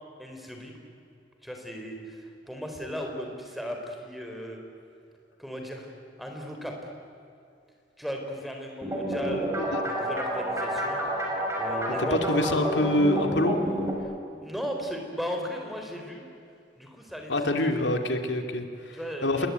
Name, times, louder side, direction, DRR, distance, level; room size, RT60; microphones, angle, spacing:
voice 1, 0.2-0.7 1.4-4.6 5.4-5.9 6.2-6.7 8.0-9.5 9.9-11.3 11.6-12.2 14.4-16.2 16.7-17.5 18.9-19.5, equal, ahead, 2 dB, 4.0 m, -36 dB
sound 1, 8.8-13.9, right 1 dB, 15° right, 5.1 m, -29 dB
voice 2, 12.1-13.6 17.3-19.5, left 1 dB, 80° left, 5 dB, 2.5 m, -26 dB
28.0 x 20.5 x 9.3 m, 2.5 s
head